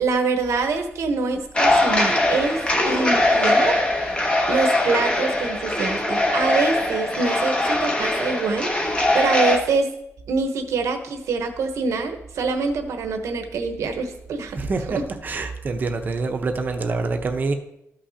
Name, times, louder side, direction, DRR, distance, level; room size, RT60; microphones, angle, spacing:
voice 1, 0.0-4.2 4.5-9.9 10.3-14.6 14.9-15.0, right 4 dB, 85° right, 6 dB, 1.0 m, -25 dB
sound 1, 1.5-9.6, left 1 dB, 20° left, 1.0 m, -21 dB
voice 2, 14.6-17.5, right 3 dB, 40° right, 6 dB, 0.8 m, -26 dB
13.0 x 5.8 x 2.8 m, 0.81 s
wide cardioid pair, 160°, 5 cm